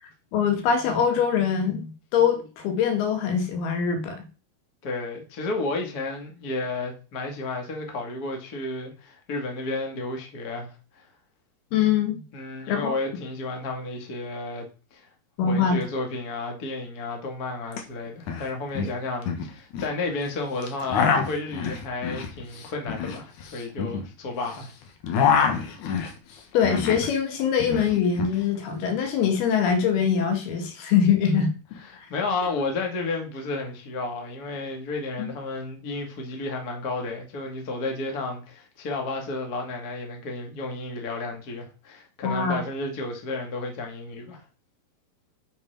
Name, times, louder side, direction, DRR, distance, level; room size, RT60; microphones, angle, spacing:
voice 1, 0.3-4.2 11.7-12.2 12.7-13.0 15.4-15.8 26.5-31.5 35.2-35.3 42.2-42.6, left 7 dB, 85° left, 3.6 m, -23 dB
voice 2, 4.8-10.7 12.3-15.1 15.4-24.7 31.8-44.4, left 2 dB, 30° left, 1.9 m, -32 dB
sound 1, 17.7-17.8 18.1-18.4 18.7-19.9 20.6-24.6 24.9-27.1 27.4-28.4, left 6 dB, 65° left, 2.5 m, -26 dB
6.7 x 6.1 x 5.7 m
omnidirectional pair, 4.3 m